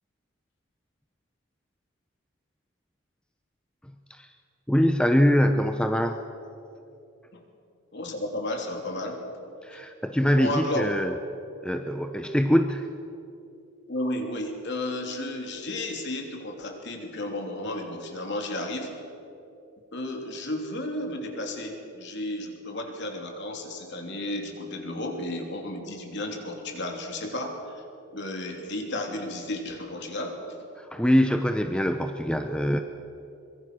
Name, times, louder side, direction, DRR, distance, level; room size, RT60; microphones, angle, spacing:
voice 1, 4.7-6.2 9.6-11.1 11.6-12.9 30.8-32.8, equal, 5° left, 6 dB, 0.7 m, -23 dB
voice 2, 7.9-9.2 9.7-9.8 10.2-10.9 13.9-18.9 19.9-27.8 28.1-30.4, left 1 dB, 50° left, 3 dB, 3.2 m, -33 dB
24.0 x 23.0 x 6.2 m, 2.7 s
head